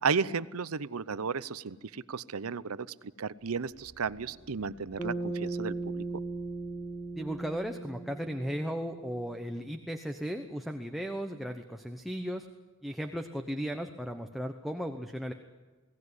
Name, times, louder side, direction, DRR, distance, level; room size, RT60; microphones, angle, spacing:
voice 1, 0.0-2.9 3.2-6.0, right 5 dB, 85° right, 17 dB, 0.7 m, -33 dB
sound 1, 3.5-7.8 8.3-8.4, right 1 dB, 30° right, 1.5 m, -58 dB
Bass guitar, 5.0-9.4, right 3 dB, 20° left, 2.2 m, -38 dB
voice 2, 7.1-12.5 12.8-15.3, equal, ahead, 4 dB, 1.0 m, -36 dB
22.0 x 17.5 x 9.8 m, 1.3 s
head